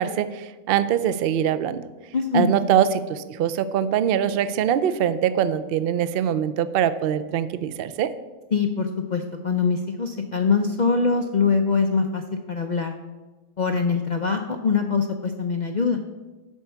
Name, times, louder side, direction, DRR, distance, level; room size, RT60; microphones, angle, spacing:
voice 1, 0.0-1.8 2.3-8.1, right 9 dB, 75° right, 13 dB, 0.5 m, -23 dB
voice 2, 2.1-2.5 8.5-12.2 12.5-12.9 13.6-16.0, left 5 dB, 80° left, 4 dB, 0.4 m, -23 dB
11.0 x 4.5 x 7.1 m, 1.2 s
omnidirectional pair, 1.6 m